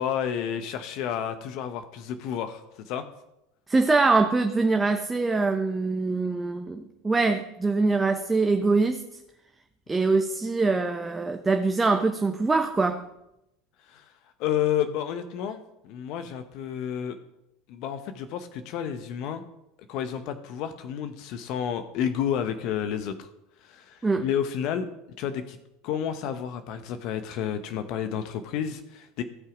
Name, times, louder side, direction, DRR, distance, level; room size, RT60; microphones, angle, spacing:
voice 1, 0.0-3.0 13.9-14.0 14.4-17.2 17.7-19.4 19.9-23.3 23.6-24.9 25.2-25.6 25.8-29.2, left 9 dB, 55° left, 10 dB, 0.9 m, -30 dB
voice 2, 3.7-9.0 9.9-13.0 24.0-24.2, right 3 dB, 15° right, 6 dB, 0.9 m, -23 dB
16.0 x 5.7 x 5.0 m, 0.87 s
hypercardioid pair, 85°, 0 cm